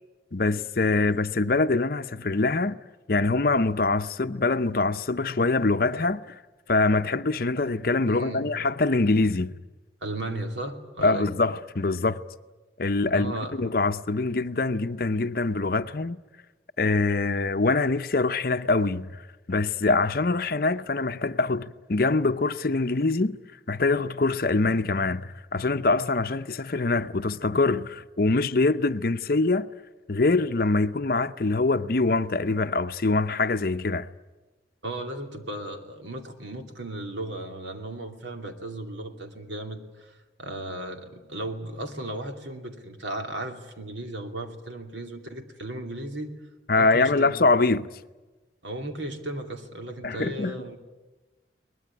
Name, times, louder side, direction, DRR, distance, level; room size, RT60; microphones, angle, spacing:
voice 1, 0.3-2.8 3.1-6.3 6.7-9.5 11.0-12.2 12.8-16.2 16.8-19.2 19.5-23.4 23.7-29.7 30.1-34.1 46.7-47.9 50.0-50.6, left 3 dB, 50° left, 0.7 m, -24 dB
voice 2, 8.1-8.5 10.0-11.3 13.1-13.6 34.8-46.4 46.8-47.4 48.6-50.8, right 1 dB, 80° right, 2.7 m, -35 dB
22.5 x 20.0 x 9.7 m
head